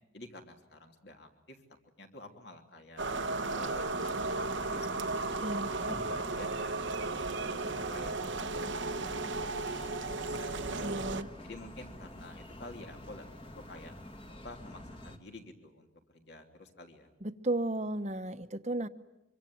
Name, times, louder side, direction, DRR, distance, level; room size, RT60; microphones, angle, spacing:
voice 1, 0.1-1.6 2.0-3.0 3.4-6.8 7.3-10.0 10.3-11.0 11.4-13.3 13.5-13.9 14.4-17.1, left 2 dB, 55° left, 4 dB, 3.1 m, -51 dB
sound 1, 3.0-11.2, right 3 dB, 75° right, 1.0 m, -35 dB
sound 2, 3.1-15.2, left 1 dB, 25° left, 1.8 m, -47 dB
voice 2, 5.4-5.7 10.8-11.3 17.2-18.9, right 1 dB, 35° right, 9 dB, 1.0 m, -34 dB
26.0 x 24.5 x 9.3 m, 0.92 s
head